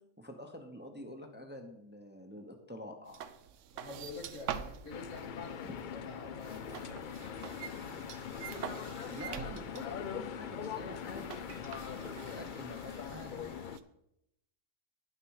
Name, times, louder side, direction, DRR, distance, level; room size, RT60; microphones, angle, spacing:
voice 1, 0.2-3.3 5.6-5.7 9.0-11.6 11.9-13.3, equal, 10° right, 4 dB, 0.7 m, -47 dB
sound 1, 3.1-13.8, right 8 dB, 80° right, 0.9 m, -46 dB
voice 2, 3.7-7.7, left 3 dB, 85° left, 2 dB, 2.0 m, -48 dB
sound 2, 4.9-13.8, left 8 dB, 65° left, 0.5 m, -42 dB
9.8 x 6.7 x 4.7 m, 0.82 s
omnidirectional pair, 1.3 m